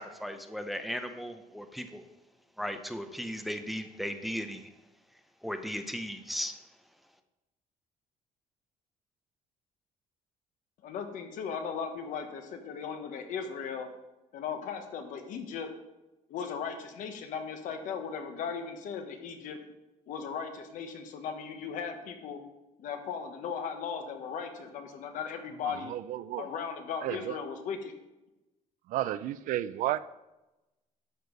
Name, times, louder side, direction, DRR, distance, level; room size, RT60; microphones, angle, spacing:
voice 1, 0.0-2.0 2.6-4.7 5.4-6.6, equal, ahead, 7 dB, 0.6 m, -36 dB
voice 2, 10.8-13.9 14.3-15.7 16.3-19.6 20.1-22.4 22.8-25.9 26.4-27.9, left 6 dB, 70° left, 6 dB, 1.3 m, -37 dB
voice 3, 25.9-26.5 27.0-27.3 28.9-30.2, right 13 dB, 70° right, 15 dB, 0.4 m, -32 dB
11.0 x 6.8 x 4.0 m, 1.0 s
cardioid pair, 145°, 14 cm